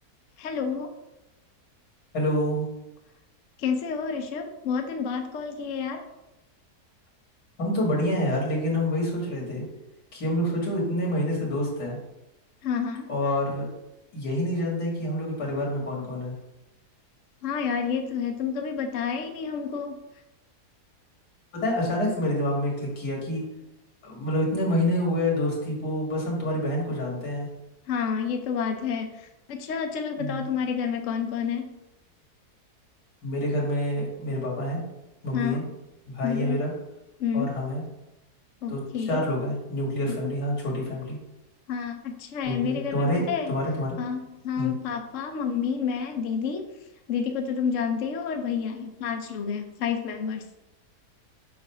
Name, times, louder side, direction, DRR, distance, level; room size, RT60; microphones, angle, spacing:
voice 1, 0.4-0.9 3.6-6.0 12.6-13.1 17.4-19.9 27.9-31.7 35.3-35.7 36.2-36.6 37.2-37.5 38.6-39.2 40.1-40.3 41.7-43.5 44.0-46.6 47.1-50.4, left 6 dB, 65° left, 4 dB, 0.9 m, -29 dB
voice 2, 2.1-2.7 7.6-9.7 10.1-12.0 13.1-13.7 14.1-16.3 21.5-23.4 24.0-27.5 30.2-30.4 33.2-34.8 35.2-35.6 36.1-36.7 37.3-37.8 38.7-38.8 39.1-41.2 42.4-43.2 43.5-44.0 44.6-44.7, left 1 dB, 80° left, -3 dB, 2.3 m, -27 dB
7.0 x 2.5 x 5.5 m, 0.94 s
omnidirectional pair, 1.7 m